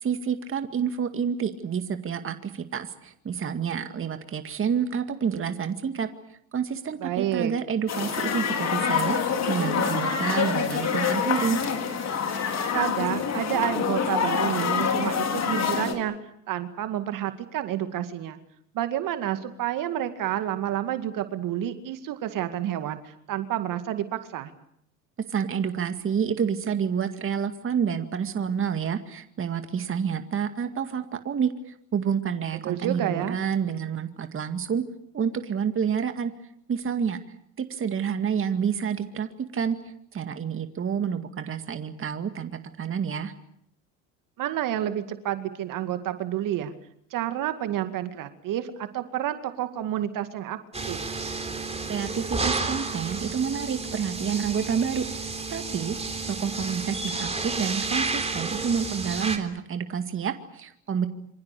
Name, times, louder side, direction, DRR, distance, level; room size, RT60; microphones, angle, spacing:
voice 1, 0.0-6.1 6.5-11.6 25.2-34.8 35.1-36.3 36.7-37.2 37.6-39.8 40.1-43.3 51.9-55.1 55.5-56.0 56.3-61.1, right 7 dB, 30° right, 8 dB, 2.1 m, -28 dB
voice 2, 7.0-7.5 12.7-16.2 16.5-18.4 18.7-24.5 32.6-33.4 44.4-46.7 47.1-50.6 50.9-51.1, right 12 dB, 50° right, 9 dB, 2.2 m, -29 dB
sound 1, 7.9-15.9, left 6 dB, 40° left, 4.4 m, -26 dB
sound 2, 50.7-59.4, right 3 dB, 15° right, 3.7 m, -31 dB
27.0 x 25.5 x 6.8 m, 0.71 s
hypercardioid pair, 75°, 40 cm